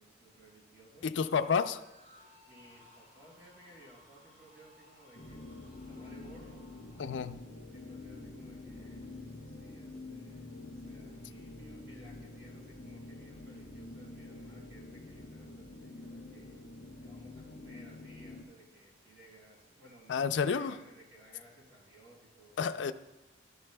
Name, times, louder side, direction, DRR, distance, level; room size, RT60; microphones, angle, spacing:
voice 1, 0.0-1.4 2.5-6.6 7.7-16.5 17.0-22.9, right 1 dB, 65° right, -4 dB, 4.3 m, -59 dB
voice 2, 1.0-1.8 7.0-7.4 20.1-20.8 22.6-22.9, left 6 dB, 70° left, 11 dB, 0.4 m, -30 dB
sound 1, 1.7-7.3, left 1 dB, 40° right, 2.5 m, -62 dB
sound 2, 5.1-18.4, left 2 dB, 45° left, 2.5 m, -47 dB
14.0 x 12.5 x 2.2 m, 1.0 s
head